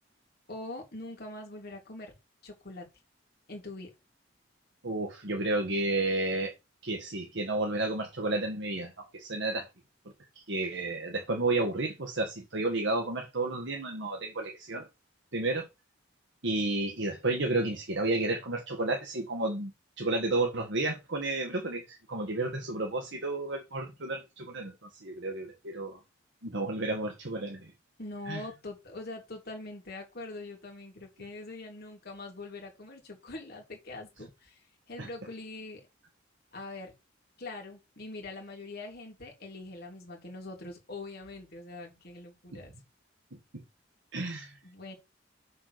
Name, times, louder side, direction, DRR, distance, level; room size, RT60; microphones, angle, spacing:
voice 1, 0.5-2.1 2.4-2.8 3.5-3.9 28.0-34.6 34.9-35.8 36.5-36.9 37.4-42.7 44.6-44.9, left 2 dB, 55° left, 3.2 m, -43 dB
voice 2, 4.8-6.5 6.8-9.7 10.3-14.9 15.3-15.7 16.4-19.7 20.0-24.7 25.0-26.0 26.4-27.7 28.3-28.4 35.0-35.1 42.5-42.6 43.5-43.6 44.1-44.5, right 2 dB, 65° right, 1.6 m, -31 dB
7.1 x 4.2 x 6.7 m
head